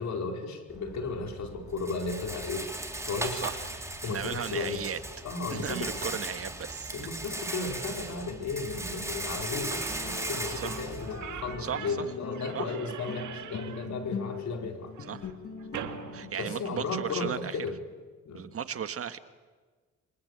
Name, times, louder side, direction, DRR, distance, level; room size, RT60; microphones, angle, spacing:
voice 1, 0.0-2.7 3.0-3.5 4.0-4.9 5.2-6.1 6.9-14.9 16.4-17.8 18.2-18.5, left 3 dB, 65° left, 4 dB, 4.7 m, -34 dB
Rattle, 0.7-11.7, right 1 dB, 10° right, 3.6 m, -38 dB
voice 2, 4.1-5.0 5.5-6.9 10.6-10.7 11.6-12.1 12.5-12.6 15.1-15.3 15.7-15.9 16.1-17.6 18.3-19.2, right 8 dB, 50° right, 11 dB, 1.5 m, -35 dB
sound 1, 9.5-16.4, left 6 dB, 50° left, 1.9 m, -41 dB
Slam / Squeak, 9.7-17.2, right 10 dB, 75° right, 2.0 m, -44 dB
27.0 x 24.0 x 8.2 m, 1.4 s
cardioid pair, 90°, 30 cm